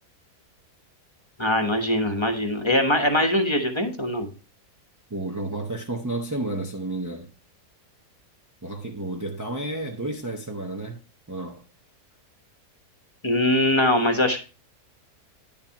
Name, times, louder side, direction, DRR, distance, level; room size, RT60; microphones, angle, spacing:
voice 1, 1.4-4.3 13.2-14.4, left 1 dB, 20° left, 1.0 m, -22 dB
voice 2, 5.1-7.3 8.6-11.0 11.3-11.7, right 2 dB, 25° right, 0.4 m, -31 dB
10.0 x 6.8 x 2.9 m
omnidirectional pair, 1.8 m